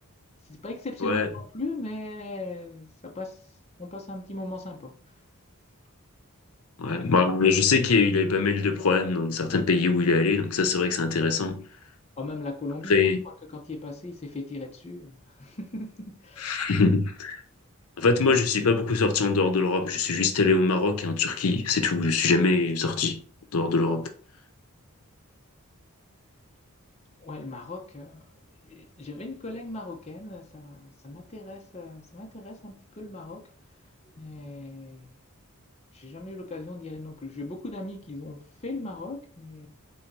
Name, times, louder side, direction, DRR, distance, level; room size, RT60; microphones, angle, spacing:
voice 1, 0.5-3.5 3.8-5.0 12.2-13.1 13.5-16.6 27.2-28.3 28.6-33.5 34.1-35.1 35.9-39.7, left 2 dB, 30° left, 0.6 m, -38 dB
voice 2, 6.8-11.7 12.9-13.2 16.4-17.4 18.0-23.2 23.5-24.1, left 4 dB, 75° left, 0.6 m, -23 dB
3.8 x 2.7 x 4.6 m
head